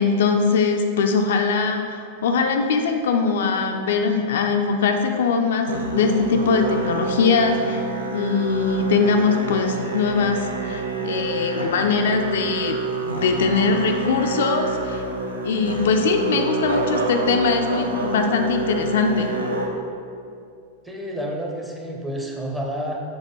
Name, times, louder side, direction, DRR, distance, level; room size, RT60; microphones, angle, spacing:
voice 1, 0.0-7.8 8.1-15.0 15.4-19.3, left 4 dB, 60° left, 4 dB, 0.4 m, -21 dB
Musical instrument, 5.7-19.7, right 2 dB, 75° right, 0.6 m, -28 dB
voice 2, 20.8-23.0, equal, 10° right, 0 dB, 0.8 m, -29 dB
7.1 x 3.3 x 3.9 m, 2.4 s
figure-of-eight pair, 90°, 0 cm